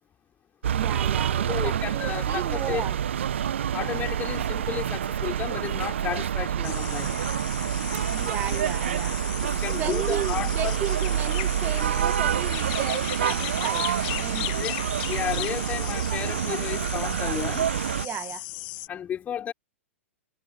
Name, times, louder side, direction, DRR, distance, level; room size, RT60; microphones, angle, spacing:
sound 1, 0.6-18.1, right 9 dB, 60° right, 1.7 m, -27 dB
voice 1, 0.7-3.0 8.0-9.2 9.7-13.9 14.1-14.6 18.0-18.4, right 11 dB, 25° right, 2.2 m, -34 dB
voice 2, 1.5-2.9 3.7-7.1 9.4-10.7 14.5-14.8 15.1-17.7 18.9-19.5, left 9 dB, 20° left, 6.2 m, -33 dB
sound 2, 6.6-18.9, left 23 dB, 40° left, 1.6 m, -36 dB
figure-of-eight pair, 110°, 7 cm